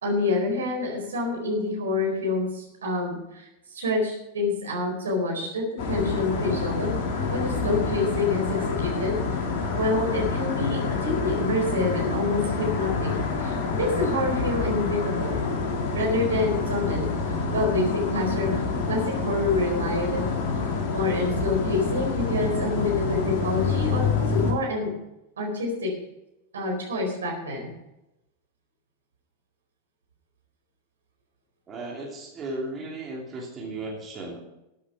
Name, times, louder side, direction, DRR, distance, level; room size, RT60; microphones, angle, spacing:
voice 1, 0.0-6.9 7.3-9.4 9.8-13.1 13.4-15.4 15.9-20.3 20.9-24.9 25.4-25.9 26.5-27.7, left 2 dB, 70° right, 0 dB, 4.3 m, -27 dB
sound 1, 5.8-24.5, left 4 dB, 45° left, 2.7 m, -27 dB
voice 2, 31.7-34.4, right 2 dB, 25° right, -2 dB, 2.9 m, -35 dB
13.5 x 8.5 x 5.8 m, 0.93 s
figure-of-eight pair, 90°, 0 cm